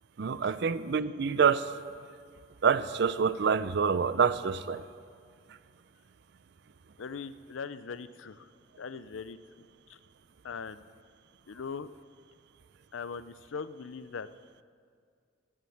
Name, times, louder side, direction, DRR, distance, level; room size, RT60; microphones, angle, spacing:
voice 1, 0.2-1.7 2.6-4.8, right 6 dB, 60° right, 15 dB, 0.5 m, -26 dB
voice 2, 7.0-8.5 8.8-10.0 10.4-10.8 11.5-11.9 12.9-14.3, left 5 dB, 85° left, 14 dB, 0.5 m, -40 dB
17.5 x 7.5 x 7.2 m, 2.1 s
head